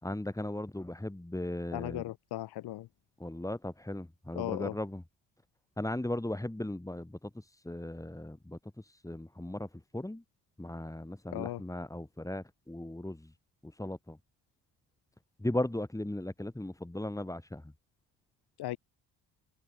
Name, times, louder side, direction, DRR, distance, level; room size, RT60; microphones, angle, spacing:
voice 1, 0.0-2.0 3.2-5.0 5.8-10.2 10.6-13.3 13.6-14.2 15.4-17.7, left 1 dB, 10° left, 5.3 m, -37 dB
voice 2, 1.7-2.9 4.4-4.7 11.3-11.6 18.6-18.8, left 15 dB, 65° left, 1.0 m, -36 dB
cardioid pair, 85°, 41 cm